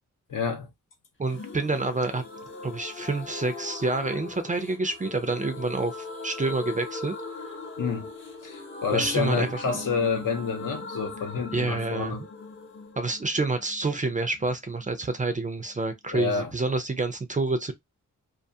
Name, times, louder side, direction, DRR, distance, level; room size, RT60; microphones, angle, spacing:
voice 1, 0.3-0.7 7.8-8.1 8.4-12.2 16.1-16.5, left 5 dB, 75° left, 0.9 m, -29 dB
voice 2, 1.2-2.2 2.6-7.5 8.9-9.8 11.5-12.3 13.0-17.7, right 3 dB, 25° right, 0.4 m, -28 dB
sound 1, 1.3-14.9 15.1-15.2 15.5-15.6, left 3 dB, 40° left, 0.6 m, -40 dB
2.4 x 2.3 x 2.6 m
wide cardioid pair, 100°, 32 cm